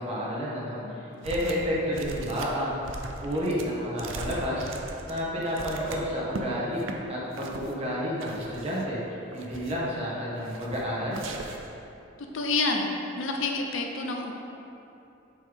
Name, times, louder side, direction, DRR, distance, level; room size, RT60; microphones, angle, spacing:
voice 1, 0.0-4.7 5.0-6.8 7.1-11.2, equal, 30° right, -6 dB, 1.4 m, -30 dB
voice 2, 0.8-1.4 12.3-12.9 13.2-14.3, left 3 dB, 75° left, 2 dB, 0.7 m, -29 dB
sound 1, 1.2-1.7 1.9-6.4 6.8-7.0 7.3-7.7 8.2-8.9 9.3-9.9 10.4-10.8 11.1-11.7, right 2 dB, 75° right, 0.6 m, -39 dB
7.6 x 5.4 x 3.6 m, 2.9 s
head